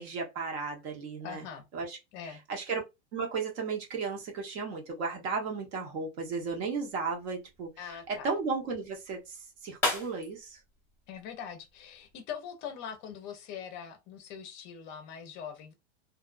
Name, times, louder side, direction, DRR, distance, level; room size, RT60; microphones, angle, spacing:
voice 1, 0.0-1.4 1.7-2.0 2.5-2.8 3.1-9.4 9.6-10.6, right 4 dB, 70° right, 1.1 m, -34 dB
voice 2, 1.2-1.6 2.1-2.4 7.8-8.3 11.1-15.7, left 8 dB, 35° left, 0.4 m, -42 dB
sound 1, 6.3-12.1, left 2 dB, 5° left, 0.8 m, -40 dB
2.5 x 2.1 x 2.4 m
supercardioid pair, 145°, 34 cm